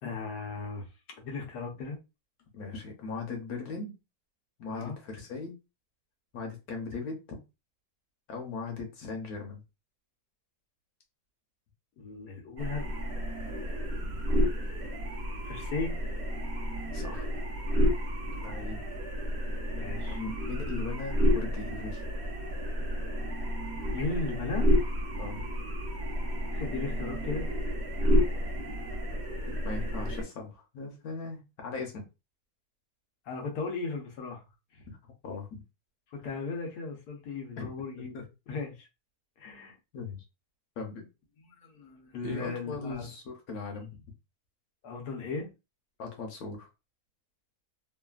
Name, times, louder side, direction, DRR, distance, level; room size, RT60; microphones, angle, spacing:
voice 1, 0.0-0.9 1.2-2.0 4.7-5.0 12.0-13.0 15.4-16.0 19.7-20.2 23.9-24.7 26.5-27.5 33.2-34.5 34.7-34.9 36.1-38.2 38.5-38.9 39.4-39.8 41.4-43.1 44.8-45.5, left 4 dB, 90° left, 1.4 m, -36 dB
voice 2, 2.5-4.0 4.6-5.6 6.3-7.4 8.3-9.6 16.9-17.3 18.4-18.8 20.1-22.0 25.2-25.4 29.6-32.0 34.9-35.0 35.2-35.6 37.6-37.7 38.1-38.2 39.9-40.2 40.8-41.1 42.2-44.0 46.0-46.7, left 4 dB, 70° left, 1.3 m, -39 dB
sound 1, 12.6-30.2, equal, 50° right, 1.0 m, -30 dB
3.2 x 2.2 x 2.3 m
omnidirectional pair, 1.6 m